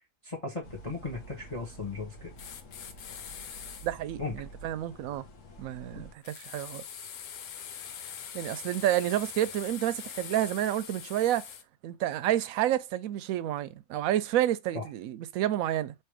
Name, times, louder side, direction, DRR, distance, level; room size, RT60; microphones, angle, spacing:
voice 1, 0.2-2.3 4.2-4.4 14.7-14.8, left 3 dB, 25° left, 1.0 m, -36 dB
sound 1, 0.6-6.1, right 2 dB, 60° left, 1.4 m, -49 dB
sound 2, 2.4-3.9 6.2-11.6, left 8 dB, 80° left, 1.2 m, -43 dB
voice 2, 3.8-5.2 5.6-6.8 8.3-11.5 11.8-15.9, right 12 dB, 75° right, 1.0 m, -29 dB
3.6 x 3.0 x 4.7 m
omnidirectional pair, 1.5 m